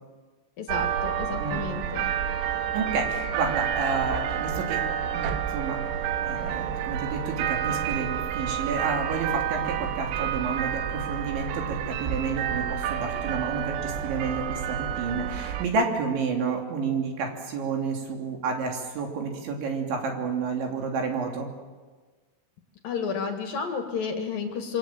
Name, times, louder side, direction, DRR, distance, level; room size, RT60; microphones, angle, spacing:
voice 1, 0.6-2.1 22.8-24.8, left 6 dB, 55° left, 5 dB, 2.8 m, -31 dB
sound 1, 0.7-15.7, right 9 dB, 85° right, 3.7 m, -29 dB
voice 2, 1.4-1.7 2.7-6.0 6.2-21.5, right 4 dB, 65° right, 2 dB, 5.3 m, -30 dB
27.0 x 24.0 x 7.5 m, 1.3 s
omnidirectional pair, 5.9 m